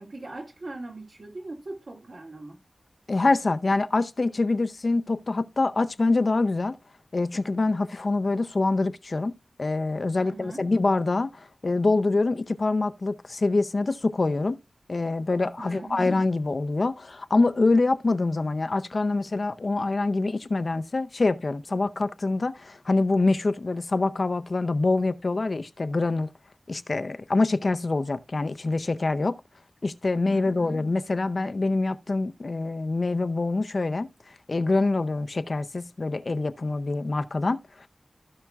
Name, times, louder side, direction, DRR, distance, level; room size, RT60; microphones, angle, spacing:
voice 1, 0.0-2.6 10.2-10.7 15.6-16.2 30.3-30.8, right 2 dB, 60° right, 2.4 m, -40 dB
voice 2, 3.1-6.8 7.1-9.3 9.6-14.6 14.9-26.3 26.7-29.4 29.8-37.9, left 3 dB, 55° left, 0.6 m, -25 dB
15.0 x 5.8 x 2.4 m
wide cardioid pair, 65°, 0 cm